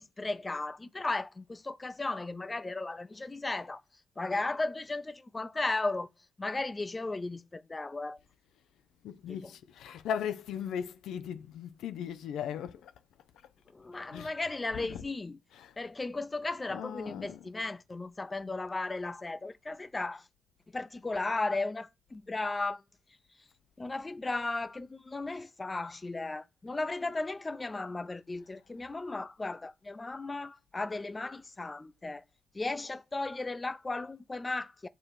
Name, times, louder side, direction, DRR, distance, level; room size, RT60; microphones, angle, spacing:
voice 1, 0.0-3.8 4.2-6.1 6.4-8.2 9.3-9.5 13.7-15.4 15.8-20.3 20.7-22.8 23.8-32.2 32.5-34.9, left 2 dB, 25° left, 0.6 m, -35 dB
voice 2, 9.0-12.9 14.1-14.3 14.7-15.0 15.5-15.7 16.7-17.5, left 8 dB, 90° left, 0.5 m, -38 dB
7.6 x 3.0 x 4.9 m
cardioid pair, 75°, 0 cm